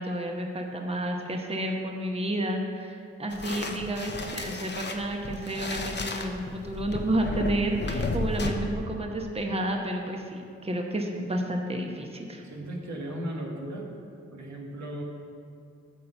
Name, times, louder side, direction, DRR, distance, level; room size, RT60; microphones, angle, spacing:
voice 1, 0.0-12.4, right 1 dB, 20° right, 2 dB, 1.0 m, -31 dB
sound 1, 3.3-8.5, left 3 dB, 40° left, 0.9 m, -33 dB
voice 2, 12.4-13.9 14.3-15.0, right 1 dB, 70° right, -1 dB, 1.5 m, -36 dB
8.5 x 4.2 x 6.9 m, 2.4 s
supercardioid pair, 45°, 29 cm